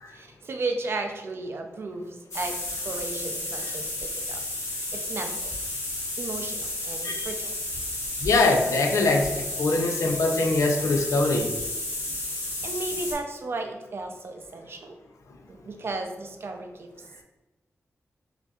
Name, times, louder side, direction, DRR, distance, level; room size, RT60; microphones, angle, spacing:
voice 1, 0.1-4.4 4.9-5.5 6.2-7.5 12.1-14.9 15.5-16.9, right 3 dB, 50° right, 4 dB, 0.4 m, -35 dB
sound 1, 2.3-13.1, left 2 dB, 70° left, 1.2 m, -32 dB
voice 2, 8.2-11.5, left 3 dB, 90° left, 4 dB, 0.4 m, -23 dB
5.0 x 2.6 x 2.3 m, 1.1 s
wide cardioid pair, 145°, 5 cm